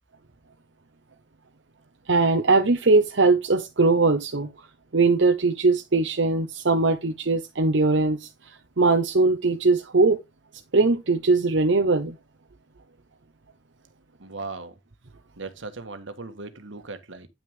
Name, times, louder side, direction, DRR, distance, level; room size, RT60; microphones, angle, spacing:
voice 1, 2.1-4.5 4.9-8.3 8.8-10.2 10.7-12.2, right 3 dB, 70° right, 0.9 m, -20 dB
voice 2, 14.2-14.7 15.4-17.3, right 3 dB, 85° right, 1.5 m, -38 dB
9.7 x 6.1 x 3.6 m
head